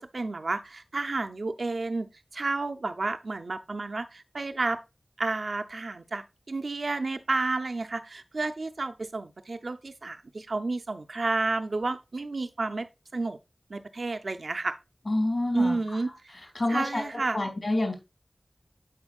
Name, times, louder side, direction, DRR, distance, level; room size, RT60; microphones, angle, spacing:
voice 1, 0.0-2.1 2.3-4.8 5.2-12.9 13.1-13.4 13.7-14.8 15.5-16.3 16.7-17.4, right 3 dB, 75° right, 0.6 m, -31 dB
voice 2, 15.1-15.8 16.5-17.1 17.3-17.9, left 2 dB, 55° left, 2.3 m, -27 dB
11.0 x 4.4 x 2.4 m
wide cardioid pair, 65°, 0 cm